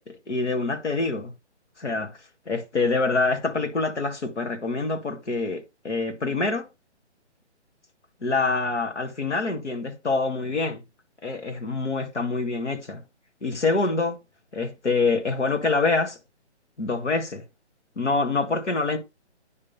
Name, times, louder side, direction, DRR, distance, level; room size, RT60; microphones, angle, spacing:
voice 1, 0.0-1.3 1.8-2.2 2.5-6.7 8.2-10.8 11.2-13.0 13.4-14.2 14.5-16.2 16.8-17.4 18.0-19.0, left 3 dB, 75° left, 2.3 m, -26 dB
9.5 x 3.6 x 5.7 m
hypercardioid pair, 180°, 35 cm